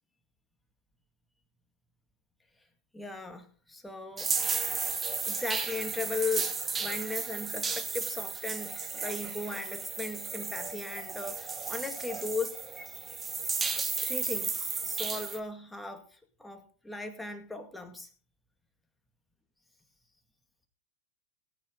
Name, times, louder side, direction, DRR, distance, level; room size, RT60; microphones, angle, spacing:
voice 1, 2.9-4.3 4.8-12.6 14.0-18.1, left 3 dB, 5° left, 6 dB, 2.1 m, -37 dB
sound 1, 4.2-15.4, right 5 dB, 20° right, 1.4 m, -34 dB
17.0 x 9.2 x 3.8 m, 0.39 s
hypercardioid pair, 110°, 0 cm